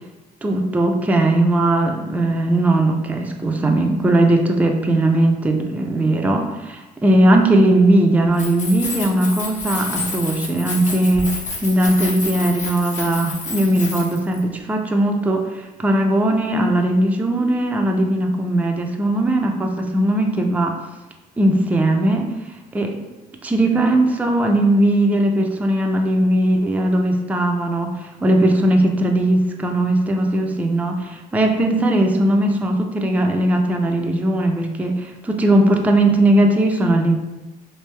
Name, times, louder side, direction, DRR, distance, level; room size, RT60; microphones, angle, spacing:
voice 1, 0.4-20.8 21.4-23.0 23.4-37.2, right 1 dB, 10° right, 2 dB, 0.4 m, -18 dB
Keys jangling, 8.3-14.4, left 3 dB, 45° left, 0.9 m, -29 dB
3.3 x 2.6 x 3.2 m, 1.1 s
cardioid pair, 110°, 17 cm